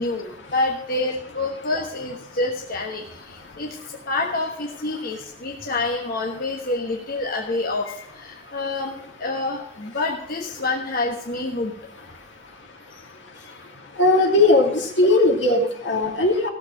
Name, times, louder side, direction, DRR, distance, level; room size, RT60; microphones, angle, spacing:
voice 1, 0.0-3.8 4.1-11.7 12.9-13.0, left 2 dB, 55° left, 0 dB, 1.3 m, -27 dB
voice 2, 14.0-16.5, left 2 dB, 75° left, 2 dB, 2.5 m, -18 dB
16.5 x 7.2 x 5.1 m, 0.73 s
head